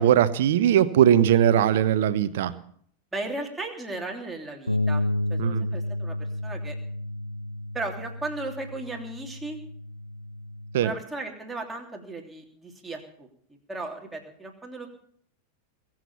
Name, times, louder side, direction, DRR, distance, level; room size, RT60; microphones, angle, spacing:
voice 1, 0.0-2.6 5.4-5.7 10.7-10.9, right 10 dB, 55° right, 14 dB, 1.0 m, -20 dB
voice 2, 3.1-5.0 5.3-6.1 6.4-6.7 7.7-9.6 10.8-13.3 13.7-14.9, right 2 dB, 10° right, 1 dB, 3.2 m, -35 dB
Bass guitar, 4.7-10.9, left 1 dB, 90° left, 0.7 m, -31 dB
22.0 x 7.7 x 7.1 m, 0.63 s
figure-of-eight pair, 90°, 0 cm